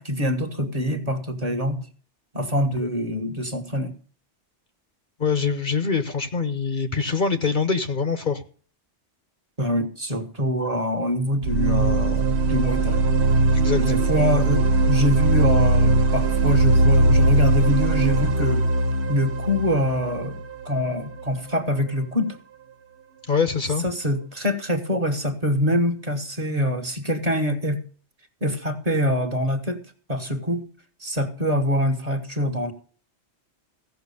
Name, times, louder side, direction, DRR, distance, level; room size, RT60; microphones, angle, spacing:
voice 1, 0.0-1.8 2.3-3.9 9.6-13.1 13.7-18.7 19.1-20.4 20.6-22.4 23.8-27.8 28.4-29.8 30.1-30.6 31.0-32.7, equal, 35° right, 4 dB, 1.3 m, -24 dB
voice 2, 5.2-8.4 13.5-13.8 23.3-23.8, left 5 dB, 45° left, 9 dB, 0.9 m, -24 dB
sound 1, 11.4-21.2, right 2 dB, 70° right, 1.0 m, -20 dB
15.5 x 5.9 x 6.8 m, 0.42 s
omnidirectional pair, 1.2 m